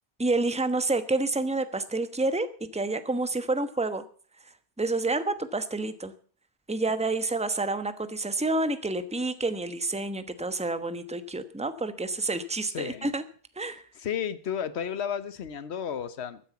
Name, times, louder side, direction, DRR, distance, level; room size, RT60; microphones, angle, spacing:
voice 1, 0.2-4.0 4.8-6.1 6.7-13.2 13.6-13.8, right 2 dB, 5° right, 11 dB, 1.0 m, -29 dB
voice 2, 12.6-13.1 13.9-16.4, left 8 dB, 75° left, 14 dB, 1.2 m, -33 dB
15.5 x 10.0 x 7.1 m, 0.44 s
omnidirectional pair, 1.1 m